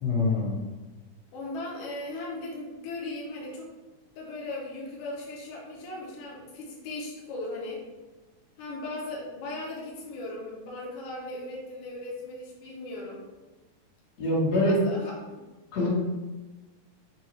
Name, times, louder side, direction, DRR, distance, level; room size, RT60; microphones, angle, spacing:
voice 1, 0.0-0.6 14.2-14.8 15.7-15.9, left 2 dB, 60° left, -7 dB, 2.1 m, -24 dB
voice 2, 1.3-3.7 4.1-7.8 8.6-13.2 14.5-15.4, left 2 dB, 80° left, -4 dB, 1.3 m, -38 dB
5.7 x 2.3 x 3.0 m, 1.1 s
omnidirectional pair, 3.7 m